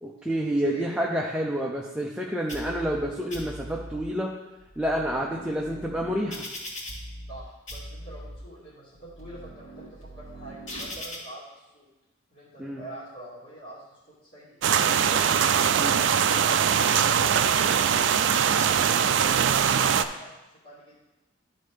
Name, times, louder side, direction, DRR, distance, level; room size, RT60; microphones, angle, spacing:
voice 1, 0.0-4.3 4.8-6.5 12.6-12.8 15.7-16.0, equal, 5° right, -2 dB, 0.5 m, -29 dB
sound 1, 2.5-3.0 3.3-4.0 4.6-7.4 7.7-8.4 9.0-11.2, equal, 70° left, 2.7 m, -40 dB
voice 2, 7.3-11.9 12.3-15.2 20.6-20.9, right 1 dB, 45° left, -11 dB, 2.0 m, -45 dB
sound 2, 14.6-20.0, right 8 dB, 65° right, 0.3 m, -22 dB
12.0 x 4.2 x 3.4 m, 1.0 s
head